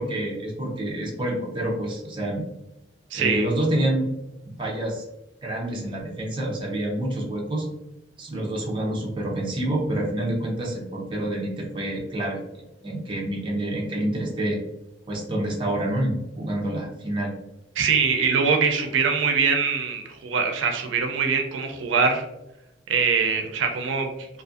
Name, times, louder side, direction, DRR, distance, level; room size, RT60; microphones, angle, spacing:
voice 1, 0.0-2.4 3.1-4.1 4.4-5.1 5.4-7.7 8.2-12.4 12.8-14.6 15.1-17.3, right 1 dB, 25° right, -2 dB, 0.5 m, -27 dB
voice 2, 3.1-3.5 17.8-22.3 22.9-24.1, right 5 dB, 90° right, 5 dB, 0.4 m, -23 dB
2.5 x 2.5 x 2.4 m, 0.92 s
head